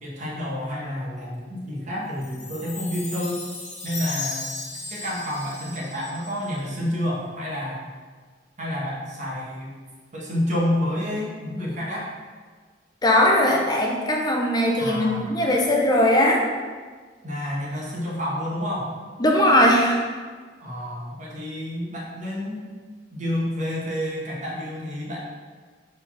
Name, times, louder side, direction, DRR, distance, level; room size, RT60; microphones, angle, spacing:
voice 1, 0.0-3.4 3.8-4.4 4.9-7.8 8.6-9.7 10.1-12.1 14.8-15.3 17.2-18.9 20.6-22.6 23.1-25.2, left 1 dB, 40° right, -4 dB, 1.6 m, -29 dB
Chime, 2.2-6.7, left 3 dB, 40° left, 1.1 m, -36 dB
voice 2, 13.0-16.4 19.2-20.0, left 1 dB, 20° left, -1 dB, 0.6 m, -19 dB
4.8 x 4.1 x 5.7 m, 1.5 s
head